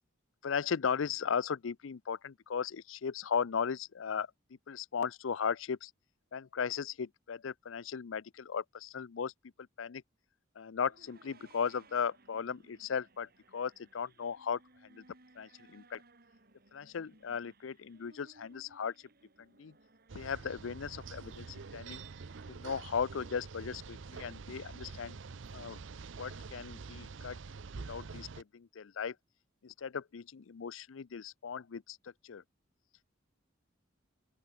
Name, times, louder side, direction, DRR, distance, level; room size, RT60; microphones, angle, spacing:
voice 1, 0.4-4.3 4.7-5.9 6.3-9.3 9.8-10.0 10.6-14.6 14.9-15.0 15.4-16.0 16.7-18.9 19.4-19.7 20.1-22.0 22.5-25.2 25.5-25.8 26.2-27.4 27.9-29.1 29.6-32.0 32.2-32.4, left 6 dB, 80° left, 0.5 m, -37 dB
sound 1, 10.7-22.5, right 2 dB, 50° right, 3.8 m, -63 dB
sound 2, 20.1-28.4, right 4 dB, 70° right, 0.6 m, -46 dB
open air
head